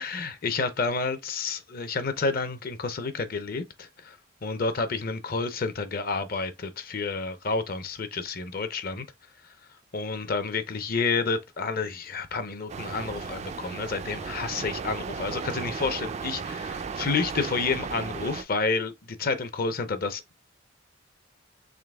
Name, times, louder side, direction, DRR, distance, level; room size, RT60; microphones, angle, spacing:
voice 1, 0.0-4.2 4.4-9.0 9.4-9.5 9.9-20.4, left 4 dB, 50° left, 0.6 m, -30 dB
sound 1, 12.7-18.4, right 5 dB, 35° right, 0.3 m, -35 dB
3.8 x 2.7 x 3.4 m
head